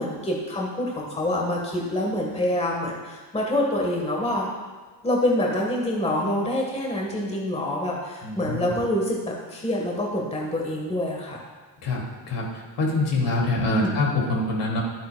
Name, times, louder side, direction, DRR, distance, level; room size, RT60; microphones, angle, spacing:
voice 1, 0.0-4.5 5.0-11.4 13.8-13.9, left 1 dB, 15° left, -2 dB, 1.4 m, -26 dB
voice 2, 8.2-8.7 11.8-12.5 12.8-14.8, left 2 dB, 65° left, -1 dB, 2.5 m, -25 dB
12.5 x 8.8 x 2.3 m, 1.4 s
cardioid pair, 115°, 45 cm